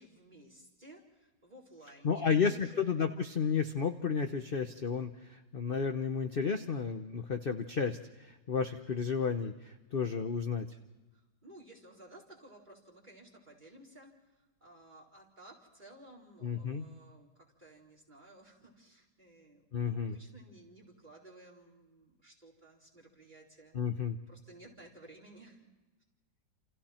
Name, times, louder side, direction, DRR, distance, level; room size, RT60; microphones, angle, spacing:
voice 1, 0.0-2.8 11.1-23.8 24.3-25.7, right 1 dB, 25° right, -3 dB, 4.6 m, -56 dB
voice 2, 2.0-10.7 16.4-16.8 19.7-20.2 23.7-24.2, left 6 dB, 40° left, 7 dB, 0.9 m, -32 dB
29.0 x 28.5 x 4.4 m, 1.2 s
omnidirectional pair, 1.9 m